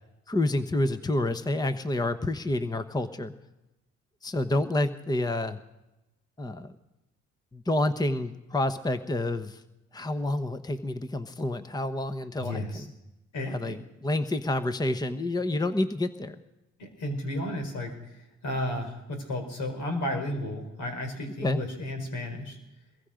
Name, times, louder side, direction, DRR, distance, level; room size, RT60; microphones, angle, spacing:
voice 1, 0.3-3.3 4.2-5.6 6.4-6.7 7.5-9.6 9.9-12.9 13.5-13.8 14.0-16.4 21.4-21.6, left 2 dB, 15° left, 10 dB, 1.0 m, -28 dB
voice 2, 12.4-12.9 13.3-13.8 16.8-17.9 18.4-22.6, left 1 dB, 75° left, 5 dB, 4.6 m, -33 dB
23.5 x 21.5 x 5.1 m, 0.98 s
cardioid pair, 90°, 30 cm